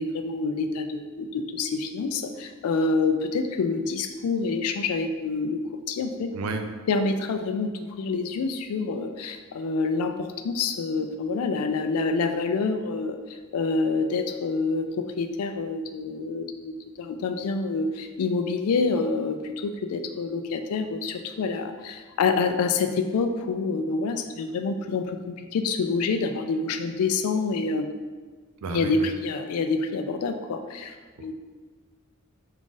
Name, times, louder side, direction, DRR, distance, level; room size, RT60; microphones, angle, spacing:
voice 1, 0.0-6.3 6.9-27.9 28.7-31.3, left 4 dB, 90° left, 7 dB, 0.4 m, -27 dB
voice 2, 6.3-6.6 28.6-29.1, right 3 dB, 85° right, 6 dB, 0.4 m, -31 dB
3.6 x 2.5 x 3.8 m, 1.4 s
head